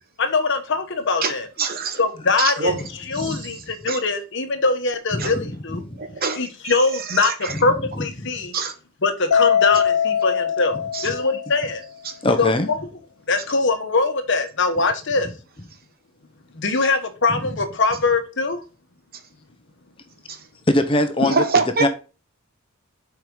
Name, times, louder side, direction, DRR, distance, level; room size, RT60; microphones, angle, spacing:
voice 1, 0.2-1.5 2.0-2.7 3.1-5.8 6.4-8.5 9.0-11.8 12.4-12.8 13.3-15.3 16.5-18.6, left 3 dB, 55° left, 1.2 m, -22 dB
voice 2, 1.6-2.0 2.4-2.8 3.2-3.5 3.9-4.0 5.2-5.3 6.0-6.7 7.1-7.5 8.5-8.7 10.9-11.1 20.3-20.4 21.2-21.9, right 4 dB, 45° right, 1.1 m, -24 dB
voice 3, 5.1-5.5 5.8-6.0 8.0-8.1 12.2-12.7 20.7-21.4 21.8-21.9, left 1 dB, 25° left, 0.8 m, -21 dB
Mallet percussion, 9.3-11.8, left 7 dB, 85° left, 0.5 m, -21 dB
7.6 x 4.8 x 3.8 m
head